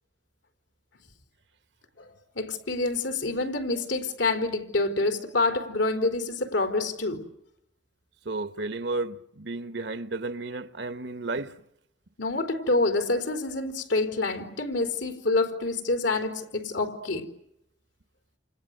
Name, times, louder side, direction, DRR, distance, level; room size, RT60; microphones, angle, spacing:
voice 1, 2.4-7.3 12.2-17.2, left 2 dB, 85° left, 4.1 m, -27 dB
voice 2, 8.2-11.5, right 3 dB, 65° right, 1.2 m, -33 dB
29.0 x 28.5 x 6.7 m
head